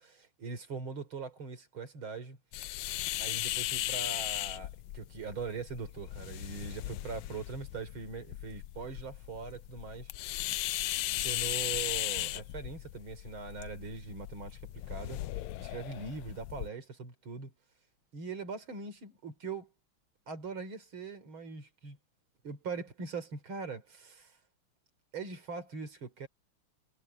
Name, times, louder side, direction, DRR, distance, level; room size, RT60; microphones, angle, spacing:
voice 1, 0.4-2.4 3.2-10.1 11.2-14.6 14.9-17.5 18.1-19.7 20.3-22.0 22.4-24.3 25.1-26.3, right 4 dB, 70° right, 4.0 m, -41 dB
sound 1, 2.5-16.7, left 15 dB, 85° left, 1.5 m, -37 dB
omnidirectional pair, 2.4 m